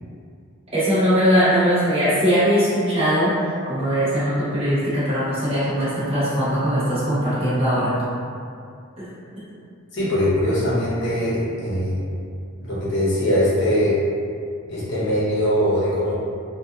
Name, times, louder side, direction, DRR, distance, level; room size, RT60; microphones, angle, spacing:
voice 1, 0.7-3.3 3.7-7.9 9.0-9.1, equal, 25° right, -12 dB, 0.9 m, -20 dB
voice 2, 9.9-12.0 12.6-14.0 14.7-16.1, equal, 55° left, -9 dB, 0.8 m, -21 dB
2.7 x 2.3 x 2.3 m, 2.4 s
head